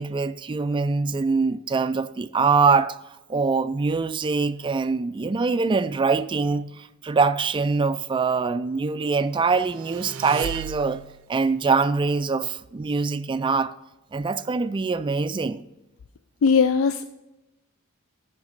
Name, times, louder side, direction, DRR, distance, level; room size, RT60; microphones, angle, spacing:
voice 1, 0.0-3.0 3.3-11.0 11.3-13.7 14.1-15.7, right 4 dB, 25° right, 0.3 m, -23 dB
sound 1, 9.6-11.3, right 8 dB, 80° right, 0.5 m, -36 dB
voice 2, 16.4-17.1, left 5 dB, 65° left, 0.3 m, -19 dB
13.5 x 5.2 x 4.0 m
head